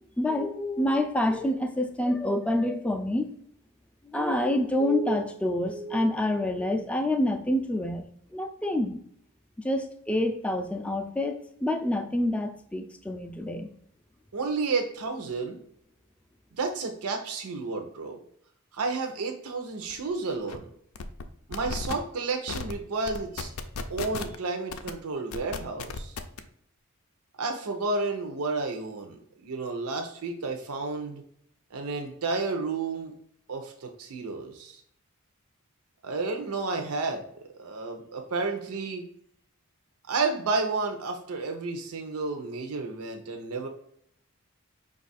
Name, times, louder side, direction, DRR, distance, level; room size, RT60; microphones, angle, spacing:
voice 1, 0.2-3.3 4.0-8.0 8.3-9.0 9.6-13.7, left 1 dB, 5° left, 5 dB, 0.3 m, -27 dB
voice 2, 14.3-15.6 16.5-18.2 18.7-20.7 21.5-23.5 23.9-26.2 27.4-31.2 31.7-33.1 33.5-34.8 36.0-39.1 40.1-43.7, right 3 dB, 85° right, 4 dB, 0.6 m, -31 dB
sound 1, 19.9-20.0 20.3-20.6 21.0-21.2 21.5-21.9 22.5-22.7 23.1-24.4 24.7-24.9 25.3-26.4, left 4 dB, 70° left, 0.4 m, -34 dB
5.3 x 2.4 x 4.0 m, 0.70 s
head